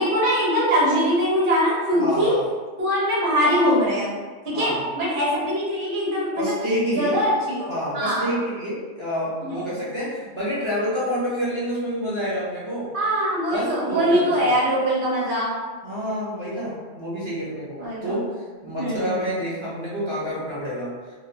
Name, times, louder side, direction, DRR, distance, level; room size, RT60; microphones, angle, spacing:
voice 1, 0.0-2.3 2.8-4.1 4.4-6.6 6.8-8.3 9.4-9.8 12.9-15.5 17.8-18.2 18.8-19.2, equal, 45° right, -7 dB, 1.1 m, -22 dB
voice 2, 2.0-2.4 4.5-4.8 6.4-7.2 7.7-12.9 13.5-14.5 15.8-20.9, equal, 30° right, -8 dB, 0.6 m, -28 dB
3.0 x 2.6 x 2.6 m, 1.4 s
omnidirectional pair, 1.3 m